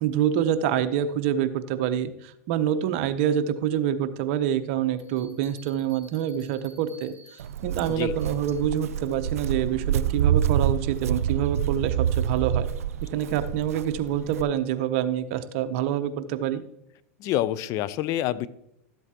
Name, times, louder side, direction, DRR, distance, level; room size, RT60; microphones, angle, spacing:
voice 1, 0.0-12.7 13.1-16.6, right 10 dB, 55° right, 11 dB, 0.8 m, -26 dB
sound 1, 5.0-8.7, right 1 dB, 5° left, 4.0 m, -54 dB
Walk footsteps, 7.4-14.4, right 10 dB, 80° right, 0.4 m, -27 dB
voice 2, 17.2-18.5, left 13 dB, 45° left, 16 dB, 0.5 m, -27 dB
13.0 x 7.9 x 2.9 m, 0.78 s
hypercardioid pair, 105°, 8 cm